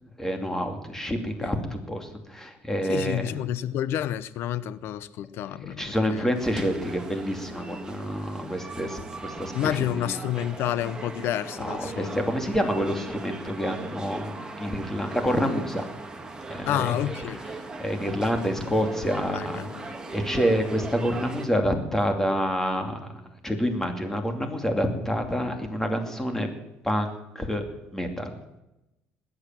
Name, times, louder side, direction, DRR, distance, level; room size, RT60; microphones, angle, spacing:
voice 1, 0.2-3.3 5.6-10.2 11.6-15.8 16.5-16.9 17.4-19.7 20.1-23.1 23.4-26.5 26.8-27.6 27.9-28.3, equal, 10° left, 5 dB, 2.6 m, -28 dB
voice 2, 2.8-6.3 9.5-12.2 16.7-17.4 19.3-19.9, left 11 dB, 65° left, 17 dB, 0.8 m, -29 dB
sound 1, 6.3-21.5, right 3 dB, 15° right, 1.9 m, -39 dB
20.0 x 8.5 x 7.5 m, 0.92 s
cardioid pair, 110°, 4 cm